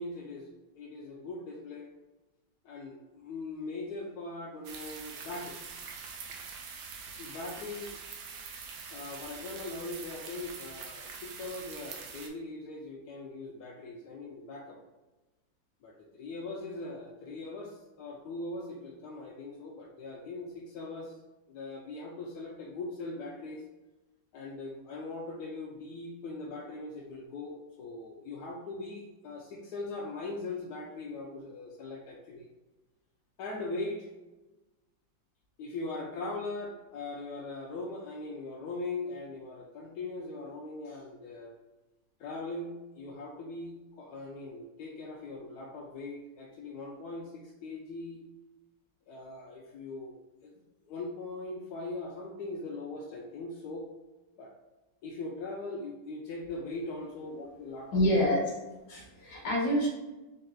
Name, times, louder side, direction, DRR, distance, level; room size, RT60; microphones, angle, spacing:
voice 1, 0.0-1.9 2.6-5.6 7.2-7.9 8.9-14.8 15.8-21.1 21.5-23.6 24.3-32.5 33.4-34.1 35.6-41.5 42.2-48.2 49.1-50.1 50.4-50.5 50.9-53.9 54.4-54.5 55.0-58.2, left 2 dB, 75° left, -1 dB, 0.9 m, -40 dB
sound 1, 4.6-12.3, right 5 dB, 85° right, 1.4 m, -44 dB
voice 2, 57.9-58.4 58.9-59.9, equal, 50° left, -2 dB, 1.4 m, -26 dB
3.9 x 3.8 x 2.2 m, 1.1 s
omnidirectional pair, 2.1 m